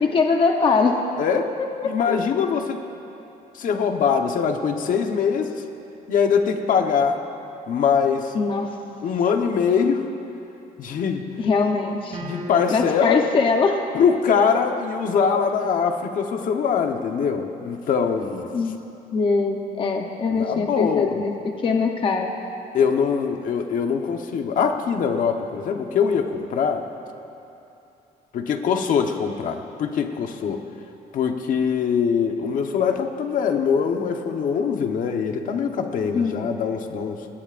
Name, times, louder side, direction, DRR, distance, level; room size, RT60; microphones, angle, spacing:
voice 1, 0.0-1.0 1.8-1.9 8.3-8.8 11.4-12.2 12.7-13.8 18.5-18.8 19.1-21.3 21.6-22.3 36.1-36.6, left 4 dB, 30° left, 3 dB, 0.9 m, -22 dB
voice 2, 1.2-1.5 1.8-2.8 3.5-5.6 6.1-7.2 7.7-8.3 9.0-10.1 10.8-11.2 12.2-13.2 13.9-18.5 20.3-21.2 22.7-26.8 28.3-30.6 31.1-37.3, left 6 dB, 55° left, 4 dB, 1.1 m, -22 dB
sound 1, 12.1-13.2, right 1 dB, 45° right, 3.1 m, -35 dB
27.0 x 21.0 x 2.6 m, 2.8 s
cardioid pair, 165°, 16 cm